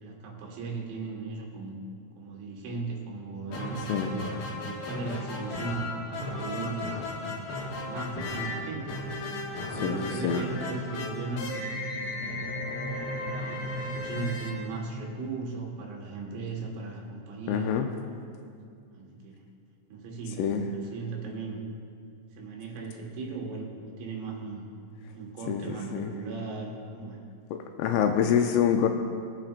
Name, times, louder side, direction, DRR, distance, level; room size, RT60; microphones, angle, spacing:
voice 1, 0.0-1.8 2.2-7.0 7.8-9.0 9.5-11.6 12.1-17.8 18.9-19.4 19.9-21.6 22.3-24.6 25.1-27.2, right 4 dB, 80° right, -1 dB, 4.2 m, -37 dB
sound 1, 3.5-15.4, left 1 dB, 65° left, 2.5 m, -35 dB
voice 2, 9.8-10.4 17.5-17.9 20.4-20.6 25.5-26.1 27.5-28.9, left 8 dB, 80° left, 5 dB, 3.0 m, -26 dB
23.0 x 9.0 x 2.5 m, 2.2 s
omnidirectional pair, 6.0 m